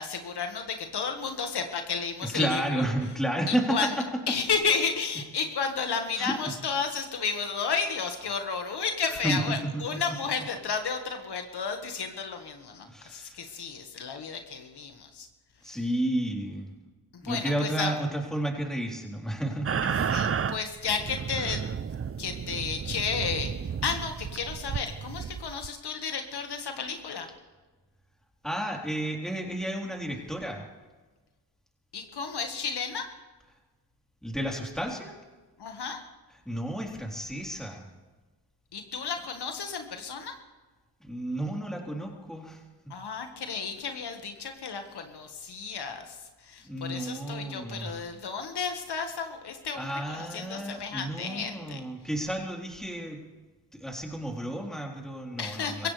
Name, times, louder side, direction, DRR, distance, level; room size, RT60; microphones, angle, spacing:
voice 1, 0.0-2.8 3.5-3.9 4.3-15.3 15.6-15.8 17.1-17.9 20.0-21.7 22.2-27.3 31.9-33.1 35.6-36.0 38.7-40.4 42.9-51.8 55.4-55.9, left 5 dB, 75° left, 5 dB, 1.7 m, -32 dB
voice 2, 2.3-4.0 6.1-6.3 9.2-10.0 12.9-13.4 15.6-16.7 17.2-19.8 28.4-30.6 34.2-35.1 36.5-37.9 41.0-42.6 46.6-48.0 49.8-53.2 53.7-55.9, right 1 dB, ahead, -1 dB, 3.8 m, -32 dB
sound 1, 19.7-25.7, right 7 dB, 35° right, 0.6 m, -32 dB
25.0 x 16.0 x 3.4 m, 1.3 s
cardioid pair, 80°, 40 cm